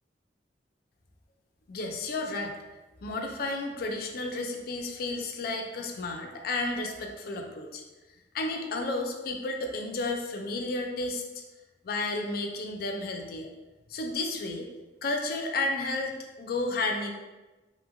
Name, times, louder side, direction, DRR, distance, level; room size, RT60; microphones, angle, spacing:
voice 1, 1.7-2.5 3.0-7.8 8.3-11.4 11.8-13.5 13.9-14.7 15.0-17.1, left 2 dB, 60° left, 3 dB, 0.4 m, -32 dB
2.9 x 2.5 x 2.3 m, 1.1 s
head